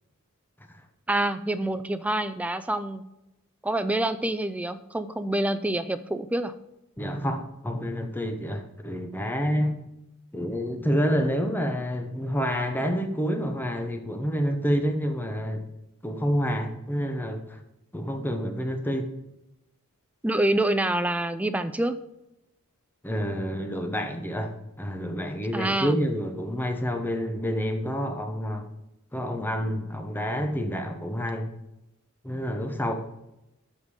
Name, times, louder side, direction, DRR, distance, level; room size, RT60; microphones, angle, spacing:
voice 1, 1.1-3.0 3.6-6.5 20.2-21.9 25.5-26.0, right 1 dB, 5° right, 11 dB, 0.3 m, -26 dB
voice 2, 7.0-9.8 10.3-15.7 16.0-17.6 17.9-19.1 23.0-28.7 29.1-31.5 32.2-32.9, equal, 10° left, 5 dB, 0.7 m, -28 dB
7.4 x 5.1 x 4.8 m, 0.89 s
head